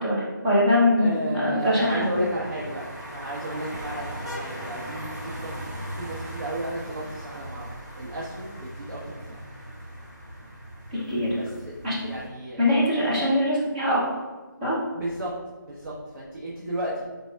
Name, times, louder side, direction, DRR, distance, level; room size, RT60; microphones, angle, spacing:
voice 1, 0.0-2.1 10.9-11.4 11.8-12.0 12.6-14.0 14.6-14.8, left 1 dB, 20° right, -7 dB, 0.9 m, -22 dB
voice 2, 1.0-2.9 3.1-7.7 8.0-9.4 11.3-11.7 12.0-13.3 14.9-15.3 15.6-17.1, right 1 dB, 90° right, -6 dB, 1.1 m, -33 dB
sound 1, 1.6-12.3, right 1 dB, 50° right, 1.2 m, -39 dB
5.5 x 4.0 x 2.4 m, 1.3 s
figure-of-eight pair, 165°, 11 cm